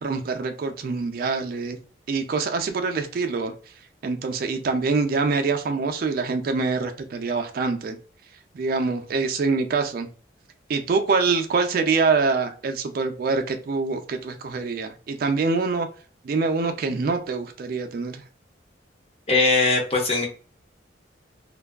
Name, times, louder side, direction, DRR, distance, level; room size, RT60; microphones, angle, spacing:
voice 1, 0.0-1.8 2.1-3.5 4.0-8.0 8.5-10.1 10.7-15.9 16.2-18.2, right 4 dB, 50° right, 6 dB, 0.3 m, -25 dB
voice 2, 19.3-20.3, left 3 dB, 30° left, 1 dB, 0.6 m, -20 dB
2.5 x 2.2 x 2.2 m, 0.39 s
head